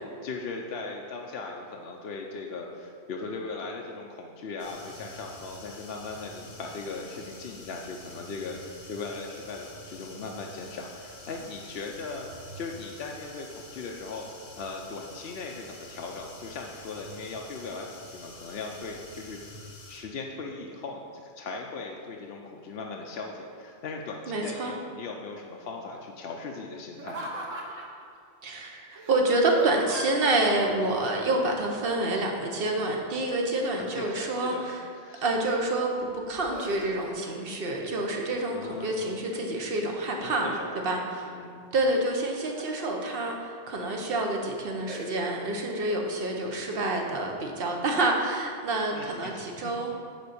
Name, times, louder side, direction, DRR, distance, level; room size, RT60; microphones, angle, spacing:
voice 1, 0.2-14.3 14.6-19.4 19.9-27.3 33.8-34.6 34.9-35.2 38.5-39.0 40.2-40.9 41.2-41.7 48.9-49.7, left 3 dB, 60° left, 0 dB, 0.8 m, -38 dB
sound 1, 4.6-20.0, left 1 dB, 80° left, 1.6 m, -47 dB
voice 2, 24.3-24.7 28.4-34.8 35.2-35.9 36.3-41.2 41.7-49.9, right 2 dB, 50° right, 1 dB, 1.1 m, -28 dB
Laughter, 26.9-28.0 29.0-30.3 32.1-32.5 32.8-34.4 35.0-35.7 36.1-37.3 37.7-38.3 38.8-39.6 40.1-40.9 42.1-42.9 43.4-43.5 44.0-44.3 44.9-45.1, right 1 dB, 90° right, 1.5 m, -41 dB
9.3 x 3.9 x 6.9 m, 2.3 s
omnidirectional pair, 1.3 m